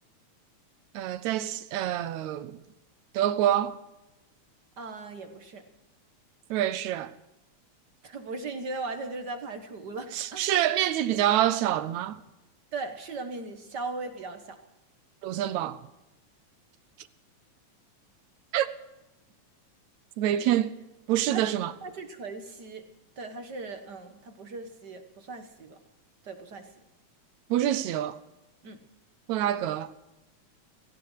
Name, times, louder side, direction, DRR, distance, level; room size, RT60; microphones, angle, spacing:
voice 1, 0.9-2.6 3.1-3.8 6.5-7.1 10.1-12.2 15.2-15.8 18.5-18.7 20.2-20.7 21.1-21.7 27.5-28.2 29.3-29.9, right 12 dB, 75° right, 2.1 m, -26 dB
voice 2, 4.8-5.6 8.0-10.5 12.7-14.6 21.3-21.5 21.8-22.8 23.2-25.8 26.2-26.7 28.6-28.8, right 3 dB, 50° right, 1.4 m, -38 dB
17.0 x 17.0 x 4.8 m
omnidirectional pair, 3.3 m